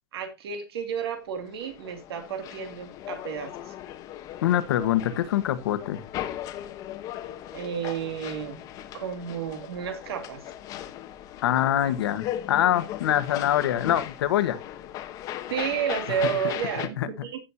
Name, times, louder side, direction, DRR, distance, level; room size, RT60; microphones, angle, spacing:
voice 1, 0.1-3.7 7.5-8.6 8.9-10.4 15.5-17.4, right 7 dB, 75° right, 7 dB, 2.6 m, -31 dB
sound 1, 1.3-16.9, left 12 dB, 25° left, 1.0 m, -38 dB
voice 2, 4.4-6.0 11.4-14.6 16.1-16.2 17.0-17.1, left 11 dB, 70° left, 11 dB, 1.4 m, -24 dB
16.0 x 6.4 x 2.7 m, 0.25 s
supercardioid pair, 170°, 13 cm